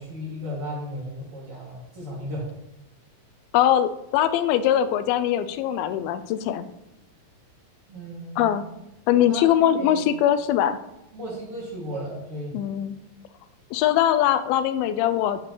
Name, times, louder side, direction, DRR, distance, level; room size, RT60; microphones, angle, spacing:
voice 1, 0.0-2.5 7.9-8.6 9.2-10.0 11.1-12.6, equal, 45° right, -4 dB, 2.5 m, -35 dB
voice 2, 3.5-6.7 8.4-8.6 9.1-10.8 12.5-13.0 13.7-15.4, left 11 dB, 90° left, 12 dB, 2.4 m, -22 dB
8.4 x 8.2 x 3.0 m, 0.91 s
omnidirectional pair, 4.2 m